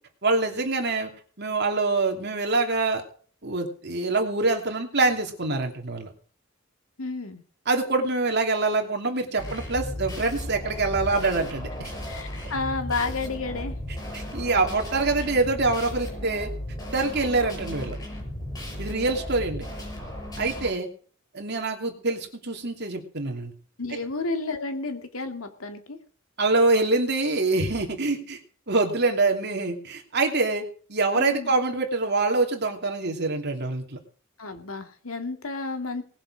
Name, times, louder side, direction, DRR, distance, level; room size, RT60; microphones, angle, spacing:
voice 1, 0.2-1.1 1.4-3.0 3.4-6.1 7.7-11.9 14.1-16.5 16.9-18.0 18.8-19.6 20.4-20.9 21.3-23.5 23.9-24.0 26.4-28.4 28.7-34.0, right 3 dB, 55° right, 3 dB, 2.9 m, -25 dB
voice 2, 7.0-7.4 12.1-13.7 23.8-26.0 31.2-31.5 34.4-36.0, left 3 dB, 90° left, 6 dB, 2.3 m, -31 dB
sound 1, 9.4-20.7, left 1 dB, 20° left, 5.9 m, -35 dB
19.5 x 7.5 x 6.4 m, 0.43 s
head